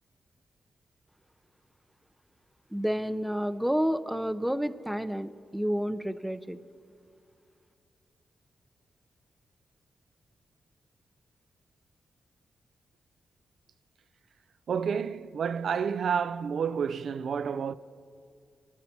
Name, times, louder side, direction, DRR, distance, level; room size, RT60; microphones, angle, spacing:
voice 1, 2.7-6.6, equal, 5° right, 0.5 m, -30 dB
voice 2, 14.7-17.7, right 7 dB, 75° right, 0.3 m, -30 dB
24.0 x 12.0 x 2.8 m
cardioid pair, 65°, 0 cm